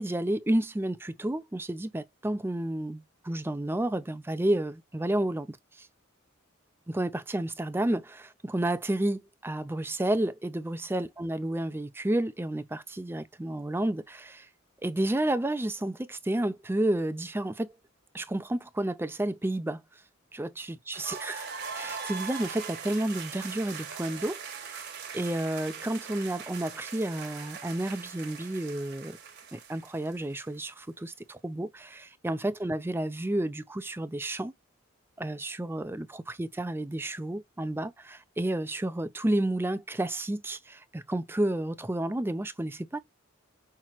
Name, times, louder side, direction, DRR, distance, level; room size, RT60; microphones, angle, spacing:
voice 1, 0.0-5.9 6.9-14.5 14.8-17.7 18.1-19.8 20.4-29.2 29.5-34.5 35.2-43.0, right 1 dB, 10° right, 0.4 m, -31 dB
sound 1, 20.9-30.7, right 6 dB, 55° right, 1.3 m, -41 dB
5.8 x 2.9 x 2.9 m
head